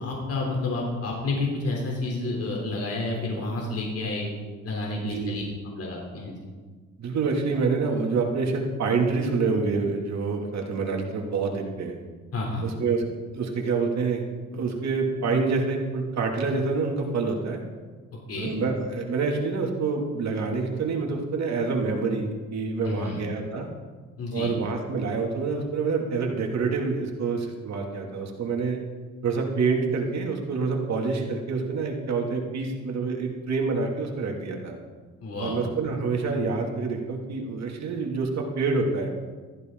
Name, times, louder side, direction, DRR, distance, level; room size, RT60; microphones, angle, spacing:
voice 1, 0.0-4.3 4.6-5.4 5.8-6.3 12.3-12.6 18.3-18.5 22.8-23.2 24.2-24.5 35.2-35.6, left 2 dB, 50° left, -1 dB, 3.6 m, -30 dB
voice 2, 5.0-5.4 7.0-12.0 12.6-13.0 13.3-14.2 14.5-17.6 18.4-23.7 24.3-28.8 29.2-34.8 35.4-39.1, right 4 dB, 60° right, 1 dB, 2.7 m, -27 dB
15.5 x 14.0 x 4.0 m, 1.4 s
cardioid pair, 90°, 30 cm